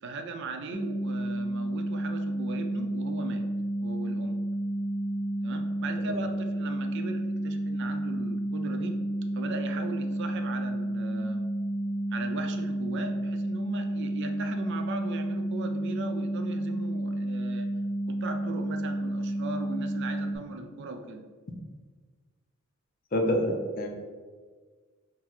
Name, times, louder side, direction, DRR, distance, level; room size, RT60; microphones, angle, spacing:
voice 1, 0.0-3.5 3.8-4.4 5.4-9.0 9.3-11.4 12.1-17.7 18.1-21.2, right 3 dB, 50° right, 6 dB, 0.4 m, -38 dB
sound 1, 0.7-20.4, right 1 dB, 70° left, 1.0 m, -31 dB
voice 2, 23.1-23.9, equal, 40° left, 2 dB, 0.5 m, -27 dB
4.0 x 2.2 x 4.4 m, 1.5 s
head